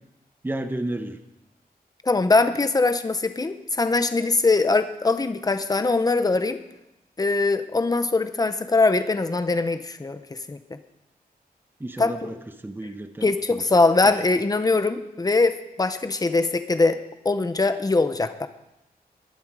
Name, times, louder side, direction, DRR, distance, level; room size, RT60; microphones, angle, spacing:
voice 1, 0.4-1.2 11.8-12.4 12.6-13.6, right 1 dB, 15° right, 8 dB, 1.0 m, -32 dB
voice 2, 2.0-6.6 7.2-10.2 10.5-10.6 12.0-12.3 13.2-17.0 17.2-18.5, left 3 dB, 25° left, 10 dB, 0.9 m, -22 dB
20.5 x 11.5 x 4.9 m, 0.92 s
wide cardioid pair, 150°, 16 cm